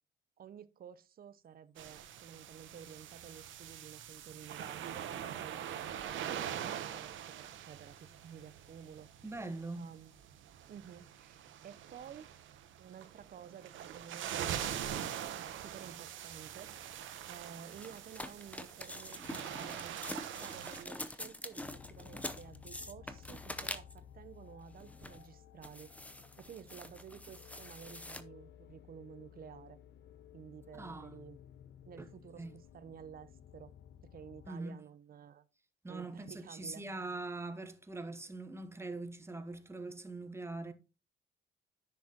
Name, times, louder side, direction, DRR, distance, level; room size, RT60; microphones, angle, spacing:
voice 1, 0.4-9.1 9.8-10.1 10.7-12.3 12.8-14.7 15.3-16.7 17.3-20.0 20.4-25.9 26.4-29.8 30.3-31.4 31.8-33.7 34.0-35.4 35.9-36.9, right 8 dB, 50° right, 0.7 m, -52 dB
sound 1, 1.8-20.8, right 10 dB, 80° right, 0.9 m, -43 dB
voice 2, 9.2-9.9 30.7-31.2 32.0-32.1 32.4-32.6 34.5-34.8 35.8-40.7, right 2 dB, 15° right, 1.1 m, -42 dB
sound 2, 17.7-24.1 24.7-25.3 25.6-28.2, left 1 dB, 5° left, 0.7 m, -45 dB
sound 3, 21.6-34.5, left 9 dB, 65° left, 0.5 m, -56 dB
10.0 x 6.5 x 2.9 m
cardioid pair, 90°, 20 cm